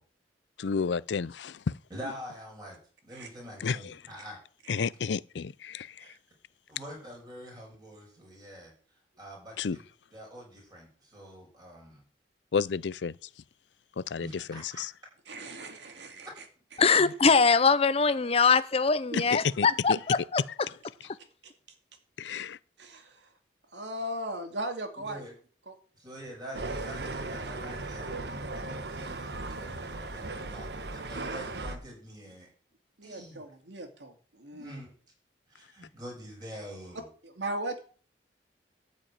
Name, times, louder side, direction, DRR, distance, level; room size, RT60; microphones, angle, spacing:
voice 1, 0.6-1.7 3.6-3.9 4.7-6.0 9.6-9.8 12.5-13.1 14.0-14.9 17.0-17.1 19.1-20.0 22.2-22.6, left 5 dB, 85° left, 0.5 m, -31 dB
voice 2, 1.9-4.4 6.7-8.7 9.2-9.9 10.1-12.0 14.2-14.8 25.0-25.3 25.9-32.5 33.0-33.4 34.5-34.9 35.5-37.1, equal, 25° right, 6.7 m, -45 dB
voice 3, 15.3-16.4 16.7-16.8 19.1-19.2 19.9-20.0 22.8-23.3 23.7-25.3 25.7-25.8 33.0-34.8 37.2-37.8, right 1 dB, 90° right, 2.2 m, -38 dB
voice 4, 16.8-20.4, left 5 dB, 35° left, 0.6 m, -23 dB
sound 1, 26.5-31.8, right 2 dB, 65° right, 1.1 m, -37 dB
13.0 x 5.2 x 8.9 m
head